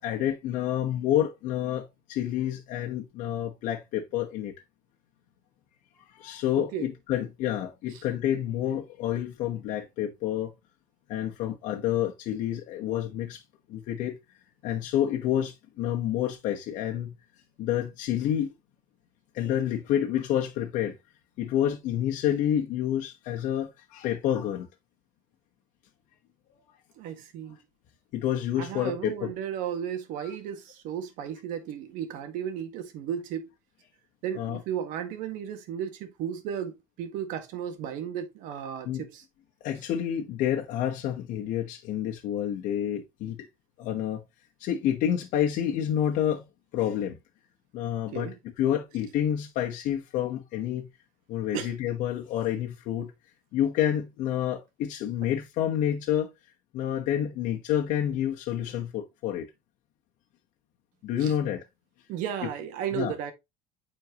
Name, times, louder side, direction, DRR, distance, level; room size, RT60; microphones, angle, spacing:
voice 1, 0.0-4.5 6.0-10.5 11.1-13.4 13.7-14.2 14.6-17.1 17.6-18.5 19.3-21.0 21.4-24.7 28.1-29.3 30.2-30.3 34.3-34.6 38.8-39.0 39.6-43.5 43.8-44.2 44.6-46.4 46.7-47.2 47.7-50.9 51.3-53.1 53.5-56.3 56.7-59.5 61.0-61.6 62.9-63.1, left 10 dB, 75° left, 1.2 m, -29 dB
voice 2, 6.6-6.9 27.0-27.6 28.6-33.5 34.2-39.2 48.1-48.4 51.5-51.7 61.2-61.3 62.1-63.3, right 9 dB, 80° right, 1.6 m, -34 dB
9.3 x 4.4 x 3.0 m
cardioid pair, 105°, 13 cm